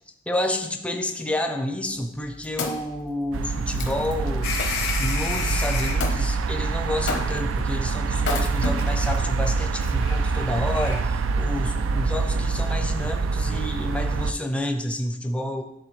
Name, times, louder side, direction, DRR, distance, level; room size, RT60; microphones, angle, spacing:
voice 1, 0.3-4.5 5.0-15.6, left 1 dB, 5° left, 5 dB, 0.5 m, -29 dB
Wood, 2.0-5.0 6.0-6.2 7.1-7.6 8.2-9.2 9.8-9.9, left 3 dB, 65° left, 0.9 m, -32 dB
sound 1, 3.3-14.3, right 4 dB, 80° right, 0.3 m, -25 dB
sound 2, 4.4-6.1 7.2-7.4 9.3-9.5 9.8-11.0, left 5 dB, 85° left, 1.3 m, -31 dB
10.0 x 3.8 x 3.2 m, 0.85 s
head